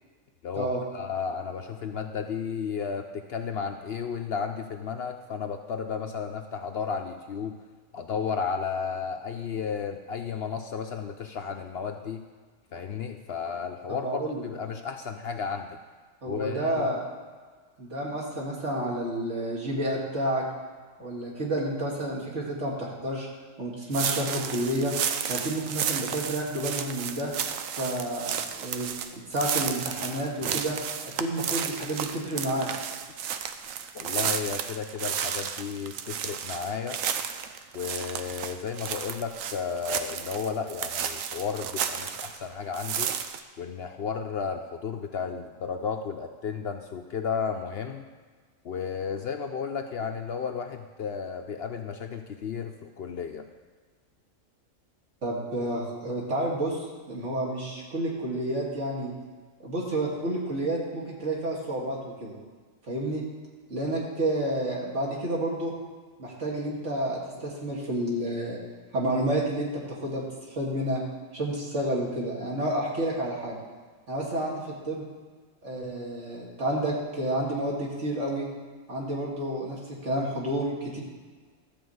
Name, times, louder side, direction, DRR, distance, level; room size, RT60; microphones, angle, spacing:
voice 1, 0.4-7.6 7.9-12.2 12.7-15.8 16.3-16.9 33.9-37.0 37.7-43.1 43.6-48.0 48.6-53.5, left 6 dB, 60° left, 5 dB, 0.8 m, -33 dB
voice 2, 13.9-14.4 16.2-17.0 17.8-20.4 21.0-23.3 23.6-24.9 25.3-27.3 27.8-28.9 29.3-30.8 31.2-32.7 55.2-59.1 59.6-62.3 62.9-63.2 63.7-65.7 66.2-68.6 68.9-70.2 70.5-71.0 71.3-73.6 74.1-75.0 75.6-78.5 78.9-81.0, right 1 dB, 60° right, -4 dB, 2.5 m, -30 dB
sound 1, 23.9-42.4 42.7-43.4, right 8 dB, 80° right, 1.1 m, -32 dB
12.5 x 4.4 x 7.9 m, 1.5 s
omnidirectional pair, 1.4 m